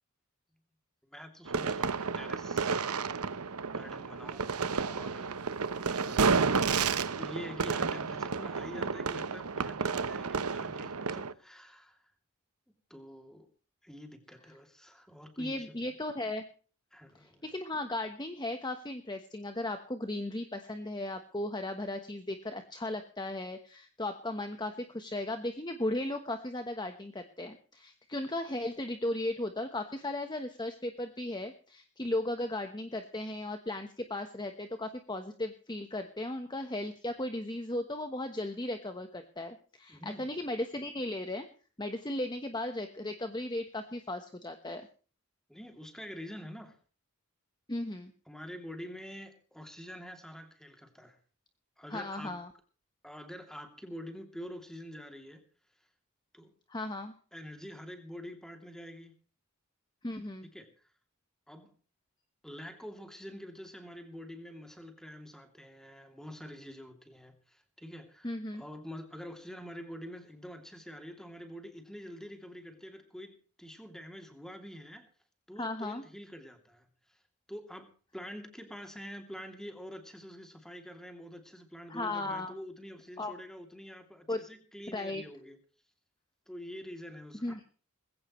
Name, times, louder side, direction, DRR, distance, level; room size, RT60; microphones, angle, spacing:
voice 1, 1.1-3.2 3.7-5.4 5.8-12.0 12.9-13.5 13.8-15.9 16.9-17.4 39.9-40.3 45.5-46.8 48.3-51.2 51.8-52.3 53.0-55.4 56.3-56.5 57.3-59.1 60.5-60.7 61.5-61.7 62.4-75.1 75.5-77.2 77.5-85.6 86.5-87.6, equal, ahead, 5 dB, 2.9 m, -46 dB
sound 1, 1.5-11.3, right 5 dB, 85° right, 1.0 m, -31 dB
voice 2, 15.4-16.4 17.2-41.5 41.8-44.9 47.7-48.1 51.9-52.5 56.7-57.1 60.0-60.5 68.2-68.6 75.6-76.0 81.9-82.5 83.2-83.3 84.3-84.4 84.9-85.2 87.4-87.6, left 1 dB, 20° left, 7 dB, 1.2 m, -36 dB
20.5 x 16.5 x 3.2 m, 0.40 s
head